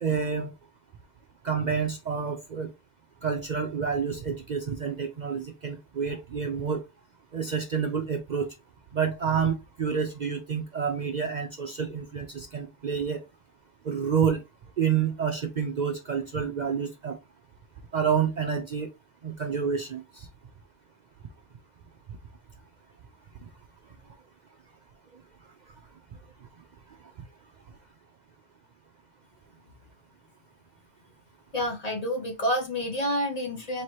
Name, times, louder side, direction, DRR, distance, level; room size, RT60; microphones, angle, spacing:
voice 1, 0.0-0.5 1.4-2.7 3.2-6.8 7.3-8.5 8.9-13.2 13.8-14.4 14.8-17.2 17.9-18.9 19.2-20.3, right 6 dB, 55° right, 0.5 m, -28 dB
voice 2, 31.5-33.8, equal, 40° left, 0.8 m, -28 dB
4.5 x 3.0 x 3.0 m
omnidirectional pair, 1.2 m